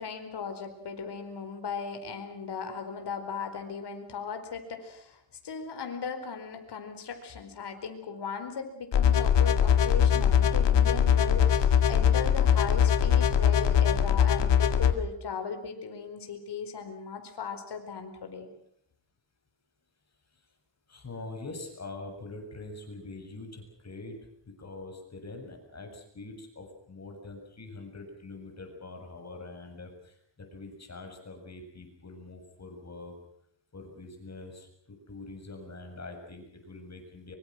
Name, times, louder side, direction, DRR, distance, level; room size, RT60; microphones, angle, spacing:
voice 1, 0.0-18.5, left 5 dB, 70° left, 7 dB, 4.5 m, -37 dB
sound 1, 8.9-14.9, left 8 dB, 85° left, 2.1 m, -22 dB
voice 2, 20.9-33.1 33.7-34.7 35.1-37.3, left 2 dB, 40° left, 4 dB, 7.5 m, -44 dB
24.5 x 24.5 x 6.3 m, 0.70 s
wide cardioid pair, 105°, 42 cm